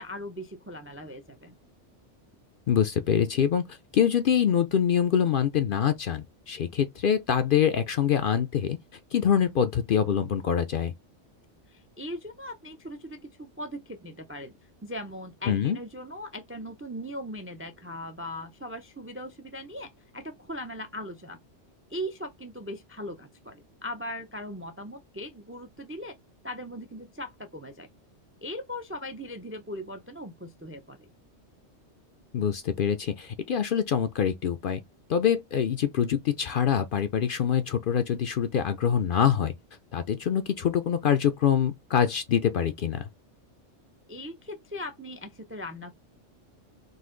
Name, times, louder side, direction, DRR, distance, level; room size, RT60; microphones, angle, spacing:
voice 1, 0.0-1.5 11.7-14.5 14.8-21.4 21.9-26.2 26.4-27.9 28.4-31.1 44.1-45.9, equal, 20° right, 0.3 m, -39 dB
voice 2, 2.7-8.8 9.1-10.9 15.5-15.8 32.3-34.8 35.1-39.5 39.9-43.1, left 8 dB, 60° left, 0.6 m, -25 dB
4.1 x 2.6 x 3.7 m
omnidirectional pair, 1.2 m